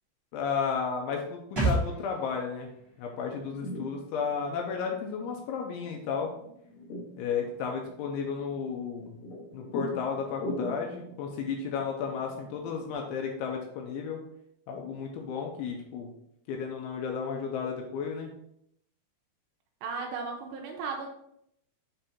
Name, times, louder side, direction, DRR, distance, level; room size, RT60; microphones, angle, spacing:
voice 1, 0.3-2.7 3.0-6.3 7.2-9.2 9.5-14.2 14.7-16.1 16.5-18.3, left 6 dB, 85° left, 1 dB, 2.9 m, -33 dB
sound 1, 1.6-5.1 5.3-5.4, right 2 dB, 25° right, 1.3 m, -34 dB
sound 2, 3.3-12.9, left 1 dB, 60° left, 2.0 m, -43 dB
voice 2, 19.8-21.1, right 4 dB, 80° right, 1 dB, 2.6 m, -35 dB
7.7 x 3.4 x 4.1 m, 0.74 s
omnidirectional pair, 5.8 m